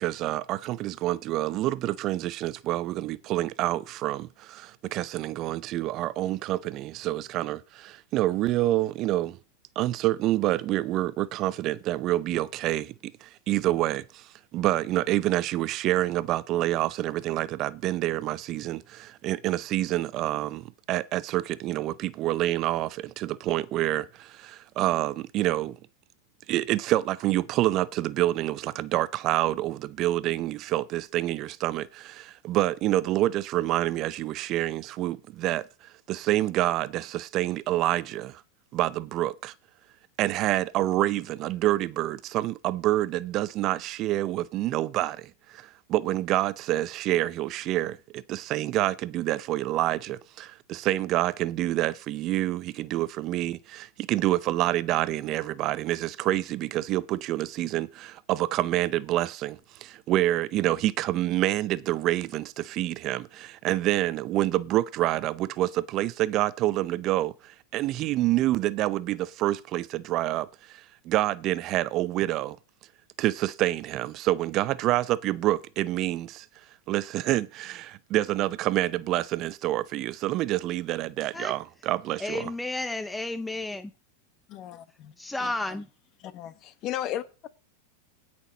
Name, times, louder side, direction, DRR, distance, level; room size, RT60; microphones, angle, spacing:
voice 1, 0.0-9.4 9.8-25.8 26.5-38.4 38.7-39.5 40.2-72.6 73.2-76.5 76.9-82.5, right 15 dB, 40° right, 0.5 m, -27 dB
voice 2, 82.2-83.9 85.2-85.9, left 2 dB, 5° left, 0.5 m, -32 dB
voice 3, 84.5-84.8 85.4-85.5 86.3-87.5, left 12 dB, 40° left, 1.1 m, -34 dB
17.0 x 6.2 x 4.0 m
hypercardioid pair, 120°, 0 cm